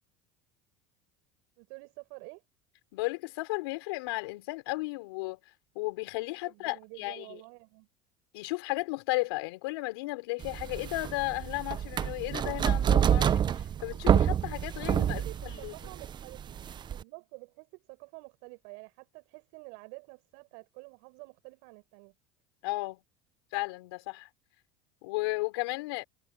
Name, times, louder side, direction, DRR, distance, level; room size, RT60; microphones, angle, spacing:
voice 1, 1.6-2.4 6.4-7.9 15.0-22.1, right 36 dB, 70° right, 7.4 m, -49 dB
voice 2, 2.9-5.4 5.7-7.4 8.3-13.4 13.8-15.7 22.6-23.0 23.5-24.3 25.0-26.0, left 23 dB, 75° left, 4.3 m, -34 dB
Locked Door, 10.4-17.0, right 9 dB, 35° right, 0.9 m, -28 dB
hypercardioid pair, 85°, 13 cm